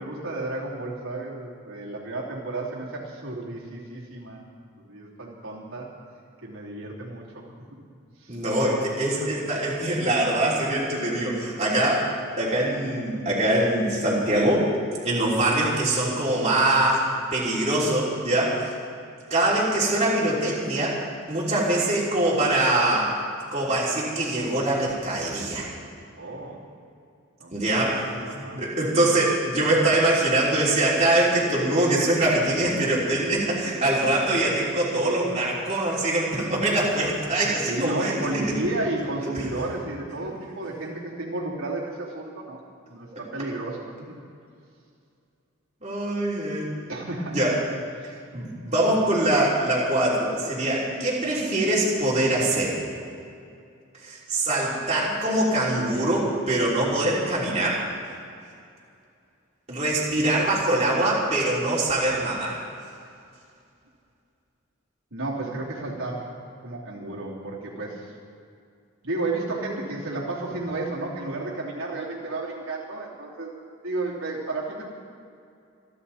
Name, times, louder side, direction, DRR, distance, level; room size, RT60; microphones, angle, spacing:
voice 1, 0.0-4.4 4.8-5.9 6.4-7.4 8.2-8.4 9.2-9.3 15.3-15.4 26.2-26.6 27.4-28.6 37.4-42.6 42.9-43.9 46.9-47.4 48.0-48.1 65.1-66.3 66.6-68.1 69.0-73.5 73.8-74.8, right 2 dB, 75° right, -5 dB, 3.2 m, -32 dB
voice 2, 8.3-12.1 12.4-14.7 15.0-18.8 19.3-21.0 21.3-23.2 23.5-25.7 27.5-38.6 39.2-39.4 45.8-46.7 47.3-47.6 48.3-52.8 54.0-57.9 59.7-62.6, right 1 dB, 30° right, -6 dB, 3.4 m, -23 dB
27.5 x 11.0 x 4.3 m, 2.4 s
head